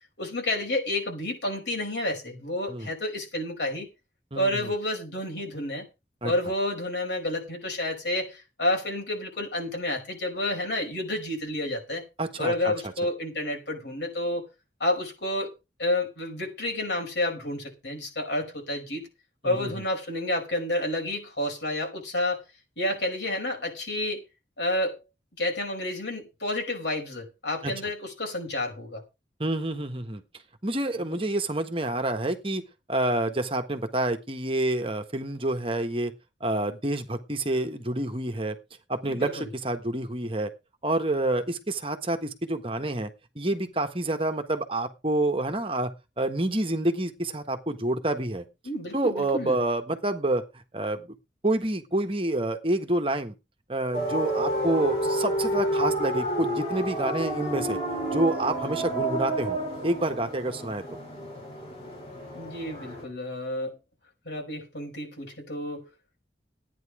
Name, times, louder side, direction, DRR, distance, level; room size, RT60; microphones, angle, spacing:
voice 1, 0.2-3.9 4.4-5.9 6.2-12.0 12.4-14.4 14.8-15.5 15.8-19.1 19.4-22.4 22.8-24.2 24.6-25.0 25.4-29.0 31.0-31.2 39.0-39.5 48.6-49.6 62.3-63.8 64.3-65.8, left 1 dB, 80° left, 5.3 m, -30 dB
voice 2, 12.2-12.7 19.4-19.7 27.6-27.7 29.4-30.2 30.6-32.6 32.9-36.1 36.4-38.6 38.9-40.5 40.8-43.1 43.3-45.9 46.2-48.4 48.9-50.4 50.7-51.1 51.4-53.3 53.7-57.8 58.1-59.6 59.8-60.8, right 1 dB, 30° right, 1.4 m, -28 dB
sound 1, 53.9-63.0, right 1 dB, 35° left, 7.0 m, -30 dB
13.5 x 9.7 x 4.9 m
head